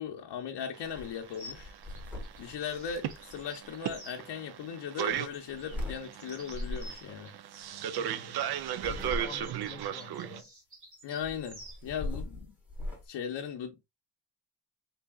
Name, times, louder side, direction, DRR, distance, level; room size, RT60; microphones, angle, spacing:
voice 1, 0.0-1.7 2.4-7.3 11.0-12.5 13.1-13.9, left 7 dB, 90° left, 0.6 m, -38 dB
sound 1, 0.7-10.4, right 10 dB, 65° right, 0.5 m, -36 dB
sound 2, 0.8-1.1 1.5-4.0 5.1-6.0 6.5-7.0 8.6-9.6 11.2-13.0, left 1 dB, 5° right, 1.0 m, -40 dB
sound 3, 1.3-4.2 5.3-7.4 8.6-11.8, equal, 45° right, 1.8 m, -51 dB
voice 2, 7.9-8.5 8.9-10.5, left 5 dB, 20° left, 0.3 m, -48 dB
3.9 x 3.4 x 2.3 m
wide cardioid pair, 165°, 41 cm